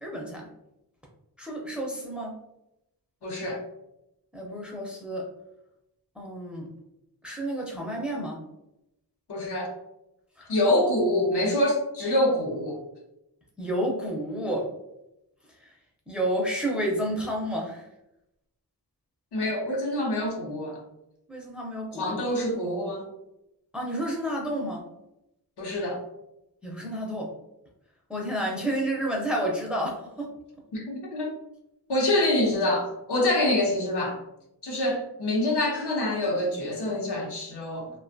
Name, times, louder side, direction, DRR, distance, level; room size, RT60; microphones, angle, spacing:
voice 1, 0.0-0.5 1.4-2.3 4.3-5.3 6.2-6.7 7.2-8.4 10.4-10.5 13.6-14.7 16.1-17.8 21.3-22.1 23.7-24.8 26.6-27.3 28.1-30.3, right 1 dB, 5° right, -1 dB, 0.4 m, -30 dB
voice 2, 3.2-3.6 9.3-9.7 10.5-12.8 19.3-20.8 21.9-23.1 25.6-26.0 30.7-31.3 31.9-34.2 34.6-37.9, left 1 dB, 90° left, -1 dB, 0.8 m, -26 dB
2.4 x 2.2 x 2.5 m, 0.87 s
wide cardioid pair, 120°, 39 cm